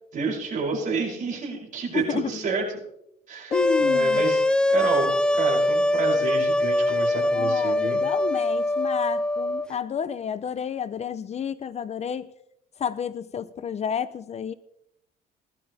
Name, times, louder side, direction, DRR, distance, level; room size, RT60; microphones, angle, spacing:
voice 1, 0.1-2.8 3.3-8.0, right 4 dB, 50° right, -3 dB, 7.2 m, -29 dB
voice 2, 1.9-2.3 3.5-4.2 7.3-12.3 12.8-14.5, left 7 dB, 40° left, 15 dB, 0.7 m, -30 dB
sound 1, 3.5-9.7, left 1 dB, 5° left, 0.4 m, -23 dB
19.5 x 12.0 x 3.5 m, 0.77 s
cardioid pair, 110°, 17 cm